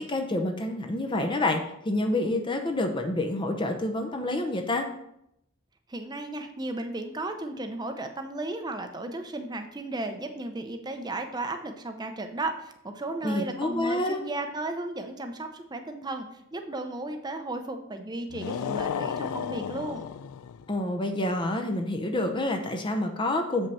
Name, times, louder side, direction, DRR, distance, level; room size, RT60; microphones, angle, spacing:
voice 1, 0.0-4.9 13.2-14.2 20.7-23.7, left 1 dB, 20° left, 4 dB, 0.6 m, -28 dB
voice 2, 5.9-20.0, right 2 dB, 20° right, 6 dB, 0.6 m, -35 dB
sound 1, 18.3-20.7, left 7 dB, 85° left, 0.4 m, -33 dB
7.5 x 5.3 x 4.2 m, 0.79 s
head